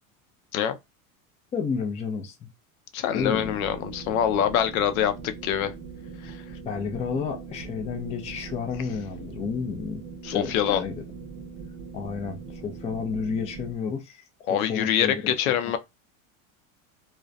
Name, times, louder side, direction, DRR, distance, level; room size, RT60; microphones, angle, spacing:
voice 1, 1.5-2.5 3.1-3.5 6.6-10.0 10.3-10.9 11.9-15.3, left 5 dB, 15° left, 0.4 m, -31 dB
voice 2, 2.9-5.7 6.2-6.4 10.2-10.8 14.5-15.8, left 9 dB, 85° left, 0.6 m, -25 dB
sound 1, 3.1-13.7, right 5 dB, 30° right, 0.6 m, -41 dB
2.4 x 2.2 x 2.4 m
supercardioid pair, 120°, 41 cm